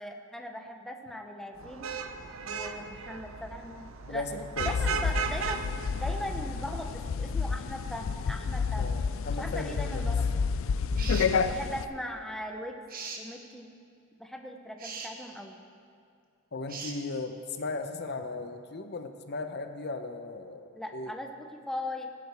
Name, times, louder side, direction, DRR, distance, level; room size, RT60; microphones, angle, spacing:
voice 1, 0.0-1.9 2.4-5.7 5.9-8.9 9.4-10.6 11.0-11.1 11.4-12.8 13.2-13.7 14.2-15.6 20.7-22.1, left 1 dB, ahead, 3 dB, 0.8 m, -39 dB
Vehicle horn car horn honking / Traffic noise roadway noise, 1.6-6.9, right 6 dB, 70° right, 0.6 m, -37 dB
voice 2, 4.1-4.7 8.8-9.0 9.2-10.1 16.5-21.1, left 3 dB, 55° left, 7 dB, 0.8 m, -37 dB
sound 1, 4.6-11.9, left 5 dB, 70° left, 0.4 m, -30 dB
sound 2, 11.0-11.3 12.9-13.2 14.8-15.1 16.7-17.0, right 5 dB, 45° right, 1.1 m, -39 dB
16.5 x 11.0 x 3.5 m, 2.4 s
head